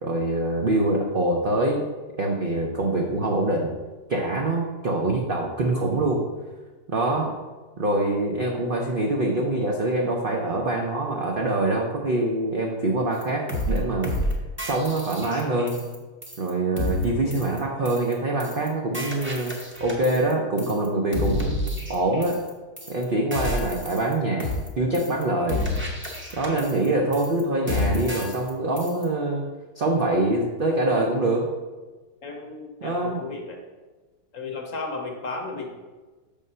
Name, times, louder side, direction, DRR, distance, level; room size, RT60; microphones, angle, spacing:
voice 1, 0.0-1.8 2.2-3.7 4.1-6.2 6.9-7.3 7.8-14.2 14.6-15.8 16.4-21.6 21.9-22.4 22.9-25.7 26.3-29.5 29.8-31.5 32.8-33.2, right 2 dB, 70° right, 0 dB, 0.5 m, -24 dB
sound 1, 13.2-13.3 13.5-13.8 14.0-14.3 14.6-16.0 16.2-16.5 16.8-17.0 17.3-17.6 17.9-18.1 18.4-18.7 18.9-20.3 20.6-20.9 21.1-22.5 22.8-23.0 23.3-24.1 24.4-24.7 24.9-25.2 25.5-26.9 27.1-27.4 27.7-28.5 28.8-29.0, left 1 dB, 10° right, 0.7 m, -30 dB
voice 2, 32.2-33.6 34.3-35.7, left 3 dB, 55° left, 2 dB, 1.0 m, -34 dB
6.3 x 3.6 x 5.4 m, 1.3 s
omnidirectional pair, 1.9 m